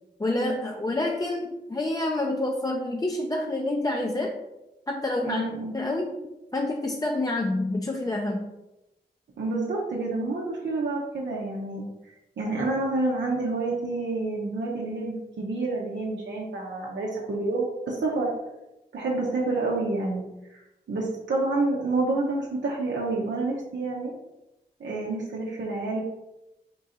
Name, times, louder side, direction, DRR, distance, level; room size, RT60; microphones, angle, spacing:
voice 1, 0.2-4.3 4.9-5.4 5.7-6.2 6.5-8.5, left 2 dB, 20° left, 1 dB, 0.4 m, -28 dB
voice 2, 5.2-5.7 9.4-11.8 12.4-18.3 18.9-20.2 20.9-24.1 24.8-26.0, right 2 dB, 90° right, -4 dB, 0.6 m, -28 dB
3.8 x 2.5 x 4.1 m, 0.94 s
cardioid pair, 45°, 18 cm